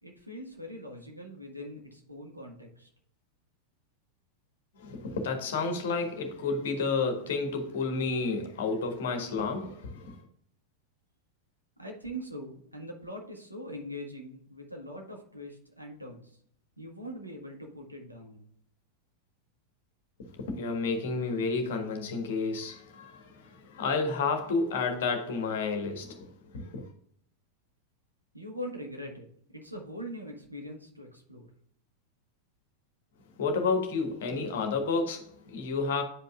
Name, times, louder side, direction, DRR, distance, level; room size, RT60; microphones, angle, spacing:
voice 1, 0.0-2.9 11.8-16.4 16.8-18.4 28.3-29.3 29.5-31.5, equal, 85° right, 1.6 m, -42 dB
voice 2, 4.8-10.2 20.3-26.9 33.4-36.0, left 4 dB, 60° left, 1.4 m, -31 dB
9.6 x 5.3 x 2.4 m
figure-of-eight pair, 90°, 0 cm